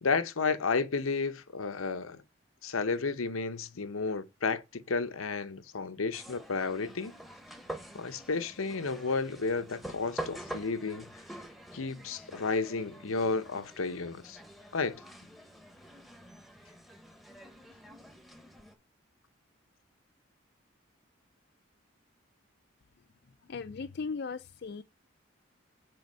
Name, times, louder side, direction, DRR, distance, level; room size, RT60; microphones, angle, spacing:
voice 1, 0.0-2.2 2.6-7.1 7.9-11.1 11.7-14.4 14.7-15.0, left 4 dB, 85° left, 0.8 m, -32 dB
sound 1, 6.1-18.7, right 1 dB, ahead, 0.9 m, -46 dB
voice 2, 23.4-24.8, left 4 dB, 50° left, 0.4 m, -37 dB
7.9 x 4.2 x 5.4 m
head